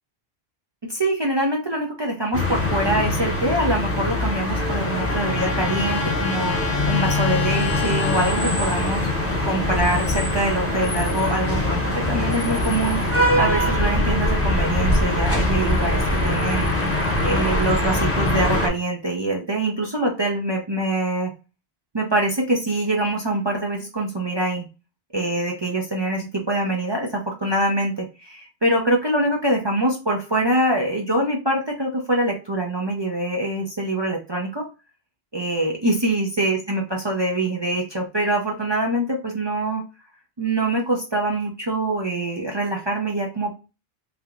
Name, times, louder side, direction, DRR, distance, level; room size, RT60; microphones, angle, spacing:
voice 1, 0.9-16.7 17.2-21.3 21.9-24.7 25.1-34.7 35.3-39.8 40.4-43.6, right 1 dB, 35° right, -1 dB, 0.5 m, -24 dB
sound 1, 2.3-18.7, left 1 dB, 15° left, 0.7 m, -22 dB
Trumpet, 4.1-8.6, left 5 dB, 80° left, 0.8 m, -31 dB
3.3 x 2.9 x 2.3 m, 0.30 s
omnidirectional pair, 1.0 m